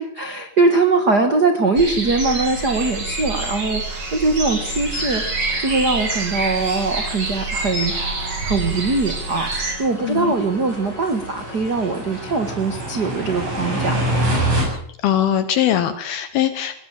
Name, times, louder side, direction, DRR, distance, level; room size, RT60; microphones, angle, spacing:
voice 1, 0.0-8.1 8.4-9.5 9.8-14.0, right 3 dB, 70° right, 7 dB, 0.9 m, -21 dB
sound 1, 1.8-9.7, right 3 dB, 35° right, 5.9 m, -26 dB
Organ, 2.2-13.0, left 4 dB, 30° left, 1.9 m, -42 dB
sound 2, 4.4-14.7, right 1 dB, 50° right, 9.5 m, -29 dB
voice 2, 10.0-10.3 15.0-16.8, left 11 dB, 70° left, 11 dB, 2.8 m, -21 dB
20.0 x 18.0 x 7.5 m, 0.65 s
omnidirectional pair, 4.9 m